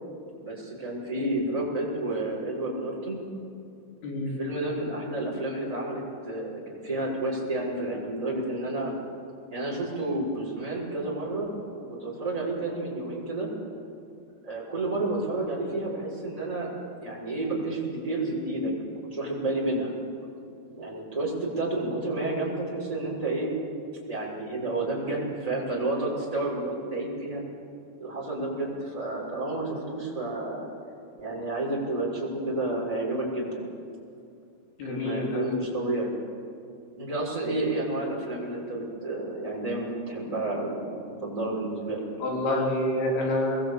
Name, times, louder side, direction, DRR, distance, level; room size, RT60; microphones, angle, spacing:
voice 1, 0.4-3.2 4.4-8.9 9.5-13.5 14.4-16.7 17.0-19.9 20.7-23.5 24.0-27.4 28.0-30.7 31.2-33.6 34.8-36.1 37.0-42.1, right 2 dB, 10° right, -4 dB, 5.9 m, -30 dB
voice 2, 4.0-4.4 34.8-35.6 42.2-43.6, left 1 dB, 80° left, -2 dB, 5.6 m, -27 dB
26.0 x 21.5 x 8.5 m, 2.5 s
omnidirectional pair, 4.5 m